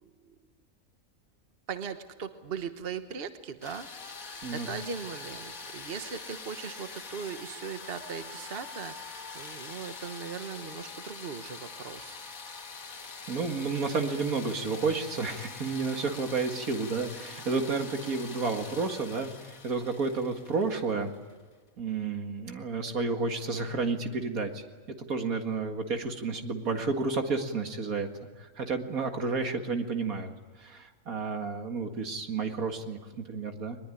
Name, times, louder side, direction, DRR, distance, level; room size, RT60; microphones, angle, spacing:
voice 1, 1.7-3.9 4.2-12.2, right 6 dB, 45° right, 9 dB, 1.3 m, -39 dB
sound 1, 3.6-21.3, left 4 dB, 75° left, 2.1 m, -44 dB
voice 2, 13.3-21.1 21.8-28.1 28.4-30.3 30.6-33.8, right 4 dB, 80° right, 5 dB, 2.4 m, -31 dB
22.0 x 21.0 x 10.0 m, 1.4 s
omnidirectional pair, 1.5 m